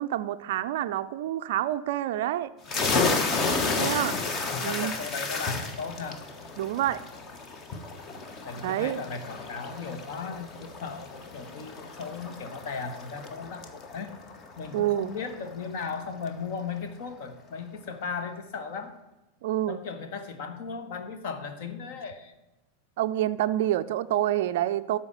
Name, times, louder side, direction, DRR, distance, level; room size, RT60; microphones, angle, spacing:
voice 1, 0.0-2.5 3.7-4.1 4.6-4.9 6.6-7.0 8.6-9.0 14.7-15.1 19.4-19.8 23.0-25.0, right 13 dB, 50° right, 10 dB, 0.4 m, -27 dB
sound 1, 2.7-16.0, left 3 dB, 30° left, 1.2 m, -32 dB
voice 2, 3.7-6.2 8.4-14.1 14.6-18.9 19.7-22.3, left 5 dB, 50° left, 8 dB, 1.3 m, -37 dB
12.5 x 4.5 x 8.2 m, 1.0 s
figure-of-eight pair, 90°, 0 cm